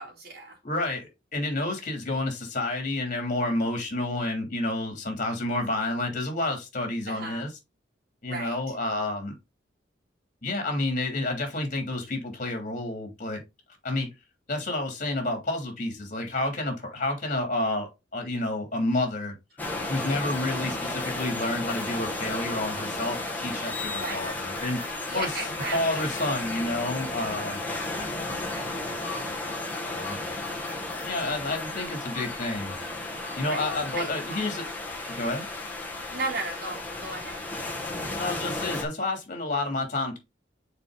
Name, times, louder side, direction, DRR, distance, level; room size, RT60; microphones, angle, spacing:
voice 1, 0.0-0.6 7.1-7.5 8.3-8.6 24.0-24.2 25.1-26.0 27.2-27.3 33.5-33.7 33.9-34.1 36.1-37.4, right 3 dB, 60° right, 2.7 m, -35 dB
voice 2, 0.6-7.5 8.2-9.3 10.4-13.4 13.8-14.1 14.5-19.3 19.9-25.4 25.7-27.6 29.8-30.2 31.0-32.8 33.3-34.6 35.1-35.5 38.1-40.2, left 2 dB, 45° left, 3.0 m, -30 dB
sound 1, 19.6-38.8, left 2 dB, 10° left, 1.9 m, -33 dB
6.7 x 4.7 x 3.9 m
head